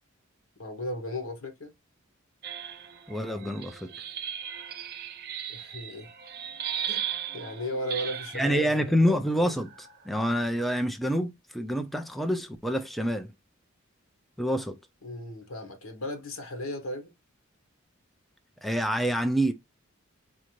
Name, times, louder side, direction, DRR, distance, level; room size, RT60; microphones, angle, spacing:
voice 1, 0.6-1.7 5.5-6.1 6.9-7.0 7.3-9.1 15.0-17.1, left 1 dB, 75° left, 1.1 m, -36 dB
sound 1, 2.4-8.6 9.5-10.1, right 9 dB, 50° right, 0.6 m, -37 dB
voice 2, 3.1-3.9 8.3-13.3 14.4-14.8 18.6-19.5, equal, ahead, 0.3 m, -27 dB
4.2 x 2.5 x 3.0 m
head